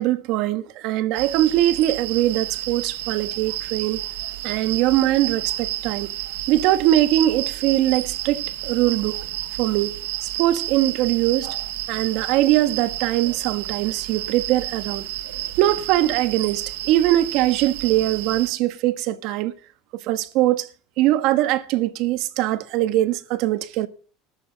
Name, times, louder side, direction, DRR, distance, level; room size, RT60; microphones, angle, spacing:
voice 1, 0.0-4.0 4.4-6.1 6.5-9.2 9.6-9.9 10.4-11.5 11.9-15.0 15.6-19.5 20.1-20.7 21.0-23.9, right 14 dB, 65° right, 1.3 m, -21 dB
sound 1, 1.1-18.5, right 15 dB, 85° right, 1.0 m, -31 dB
14.5 x 13.0 x 4.0 m
supercardioid pair, 110°, 0 cm